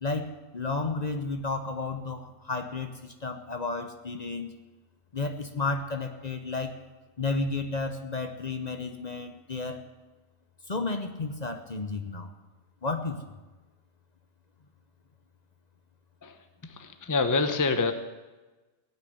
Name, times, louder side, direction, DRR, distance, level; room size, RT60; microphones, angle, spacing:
voice 1, 0.0-4.5 5.1-6.7 7.2-9.8 10.7-12.3 12.8-13.2, left 3 dB, 40° left, 6 dB, 1.0 m, -32 dB
voice 2, 16.2-17.9, left 4 dB, 20° left, 8 dB, 0.8 m, -27 dB
17.0 x 6.6 x 9.4 m, 1.2 s
omnidirectional pair, 1.1 m